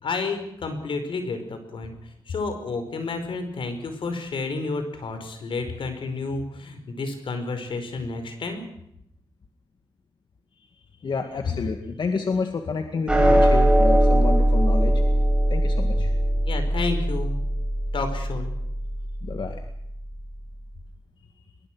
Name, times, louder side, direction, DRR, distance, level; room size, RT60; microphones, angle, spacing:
voice 1, 0.0-1.9 2.3-8.6 16.5-17.4 17.9-18.5, left 3 dB, 90° left, 7 dB, 5.1 m, -30 dB
voice 2, 11.0-15.0 15.5-16.1 19.2-19.6, left 4 dB, 65° left, 5 dB, 2.1 m, -29 dB
sound 1, 13.1-19.6, right 1 dB, 10° right, 5.4 m, -21 dB
23.5 x 22.0 x 6.2 m, 0.74 s
wide cardioid pair, 130°, 9 cm